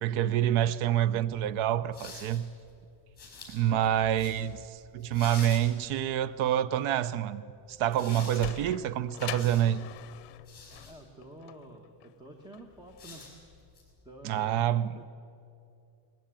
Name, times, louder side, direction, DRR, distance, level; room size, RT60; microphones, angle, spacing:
voice 1, 0.0-2.4 3.5-4.6 4.9-7.4 7.7-9.8 14.2-15.0, right 11 dB, 75° right, 0.7 m, -27 dB
sound 1, 1.2-6.2 7.7-10.9 12.7-14.0, left 4 dB, 20° left, 5.5 m, -49 dB
Sliding door, 7.9-13.1, left 14 dB, 60° left, 0.8 m, -43 dB
voice 2, 10.9-13.4 14.0-15.1, right 1 dB, 10° right, 1.0 m, -50 dB
20.5 x 14.5 x 8.9 m
cardioid pair, 175°, 49 cm